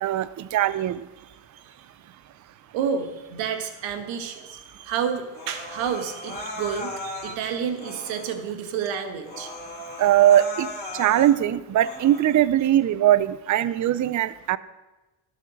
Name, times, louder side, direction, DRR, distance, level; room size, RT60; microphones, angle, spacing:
voice 1, 0.0-1.0 10.0-10.7 10.9-14.6, right 12 dB, 40° right, 17 dB, 0.6 m, -20 dB
voice 2, 1.3-1.6 2.7-9.5 10.9-11.0, right 7 dB, 80° right, 6 dB, 1.6 m, -30 dB
Human voice, 5.3-7.4 7.8-8.4 8.9-9.0 9.2-11.4 11.8-12.4, left 1 dB, 20° left, 3.1 m, -37 dB
12.0 x 8.0 x 6.5 m, 1.1 s
supercardioid pair, 70°, 45 cm